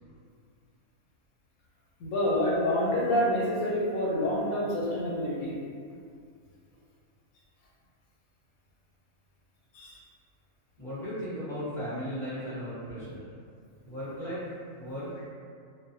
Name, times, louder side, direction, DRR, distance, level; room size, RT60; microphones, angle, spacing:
voice 1, 2.0-5.5 9.7-10.0, left 1 dB, 85° left, -5 dB, 1.1 m, -27 dB
voice 2, 10.8-13.3 13.8-14.4 14.8-15.1, equal, ahead, -13 dB, 0.9 m, -36 dB
2.5 x 2.1 x 2.7 m, 2.3 s
omnidirectional pair, 1.4 m